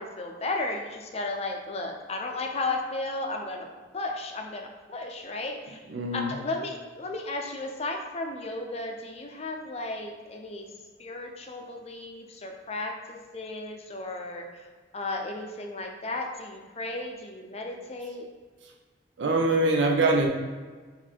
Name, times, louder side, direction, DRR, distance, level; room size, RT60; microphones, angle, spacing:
voice 1, 0.0-3.7 3.9-5.8 6.1-10.7 11.0-14.7 14.9-18.3, left 2 dB, 35° left, 2 dB, 0.5 m, -34 dB
voice 2, 5.9-6.4 19.2-20.3, right 2 dB, 75° right, 0 dB, 0.5 m, -23 dB
4.1 x 2.6 x 4.4 m, 1.4 s
head